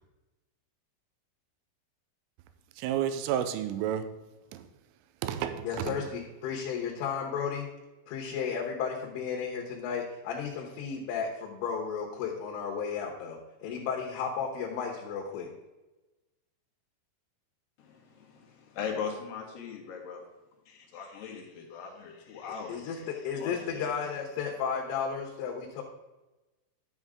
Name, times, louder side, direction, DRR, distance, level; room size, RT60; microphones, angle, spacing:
voice 1, 2.8-4.1 4.5-4.6 5.2-6.0, right 10 dB, 85° right, 3.3 m, -31 dB
voice 2, 5.6-7.7 8.1-15.5 22.7-25.8, left 6 dB, 80° left, 3.7 m, -34 dB
voice 3, 17.8-20.2 20.7-23.1 23.4-23.9, left 6 dB, 65° left, 3.1 m, -40 dB
11.5 x 7.4 x 3.6 m
omnidirectional pair, 5.7 m